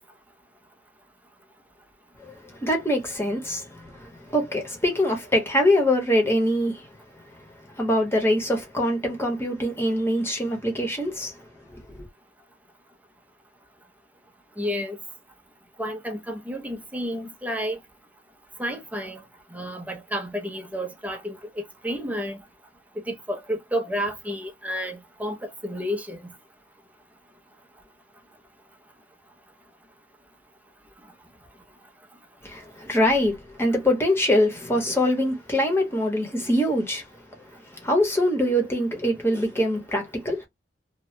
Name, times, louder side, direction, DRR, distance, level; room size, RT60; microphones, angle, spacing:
voice 1, 2.2-6.8 7.8-11.3 11.7-11.8 32.4-37.0 37.8-40.4, left 1 dB, 15° left, 1.1 m, -23 dB
voice 2, 14.6-15.0 15.8-17.8 18.6-19.2 19.5-22.4 23.1-26.3, equal, 10° right, 0.7 m, -31 dB
2.8 x 2.3 x 3.2 m
head